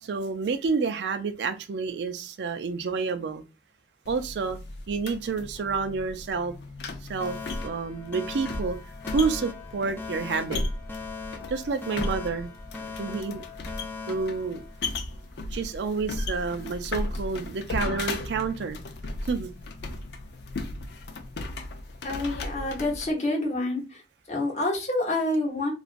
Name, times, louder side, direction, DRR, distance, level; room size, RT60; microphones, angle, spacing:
voice 1, 0.0-3.4 4.1-4.6 4.9-6.5 7.1-7.4 7.6-8.8 9.1-10.6 11.5-12.5 13.0-13.4 14.1-14.6 15.5-18.8 19.2-19.5, right 4 dB, 80° right, 0.4 m, -29 dB
sound 1, 4.1-23.1, left 2 dB, 70° left, 0.5 m, -36 dB
Alarm, 7.2-15.2, left 4 dB, 10° left, 0.3 m, -40 dB
voice 2, 22.0-24.0 24.3-25.7, left 2 dB, 40° left, 1.0 m, -27 dB
3.2 x 2.5 x 2.5 m
head